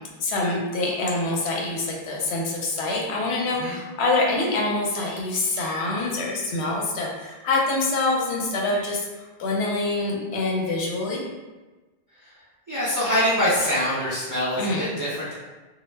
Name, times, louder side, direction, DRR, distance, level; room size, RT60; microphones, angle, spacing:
voice 1, 0.2-9.0 9.4-11.2 14.6-14.9, left 2 dB, 80° left, -2 dB, 0.9 m, -25 dB
voice 2, 12.7-15.3, equal, 30° right, -9 dB, 0.3 m, -24 dB
2.0 x 2.0 x 3.2 m, 1.2 s
omnidirectional pair, 1.1 m